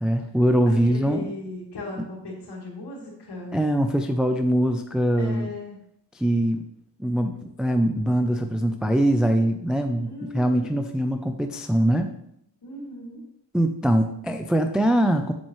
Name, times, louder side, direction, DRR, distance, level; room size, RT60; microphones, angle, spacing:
voice 1, 0.0-1.3 2.0-2.1 3.5-5.5 6.1-6.6 7.0-12.1 13.5-15.3, right 1 dB, ahead, 6 dB, 0.4 m, -22 dB
voice 2, 0.7-3.6 5.2-5.8 10.0-10.8 12.6-13.2, left 2 dB, 65° left, -4 dB, 2.7 m, -37 dB
7.5 x 7.3 x 3.1 m, 0.75 s
wide cardioid pair, 105°, 43 cm